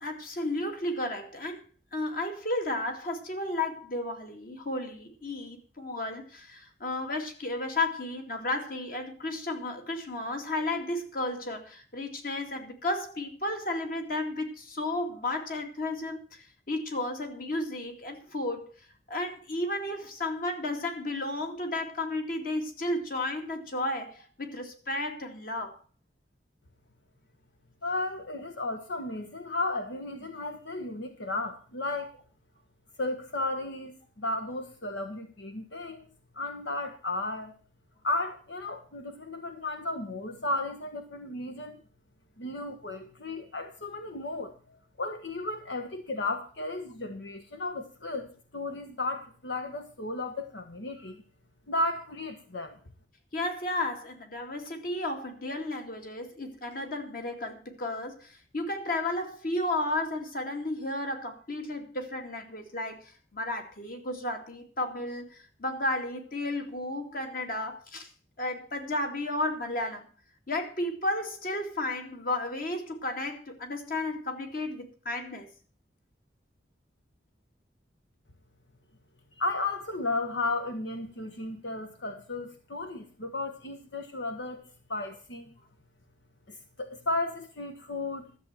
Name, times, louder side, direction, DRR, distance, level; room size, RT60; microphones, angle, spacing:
voice 1, 0.0-1.6 1.9-18.7 19.1-25.8 53.3-68.1 68.4-70.1 70.5-75.5, left 2 dB, 50° left, 4 dB, 2.4 m, -33 dB
voice 2, 27.8-32.1 33.0-36.1 36.3-37.5 38.0-41.8 42.4-51.2 51.7-52.8 79.4-84.6 84.9-85.5 86.5-88.3, left 2 dB, 85° left, 7 dB, 1.3 m, -34 dB
13.0 x 7.7 x 7.5 m, 0.39 s
head